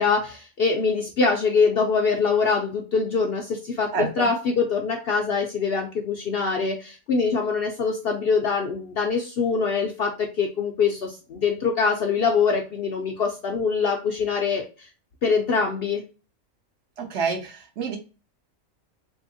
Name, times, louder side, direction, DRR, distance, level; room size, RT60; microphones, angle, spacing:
voice 1, 0.0-14.9 15.2-16.0, left 5 dB, 65° left, 2 dB, 0.6 m, -24 dB
voice 2, 3.9-4.3 17.0-18.0, right 5 dB, 60° right, 3 dB, 0.9 m, -28 dB
3.4 x 2.7 x 2.6 m, 0.33 s
omnidirectional pair, 1.4 m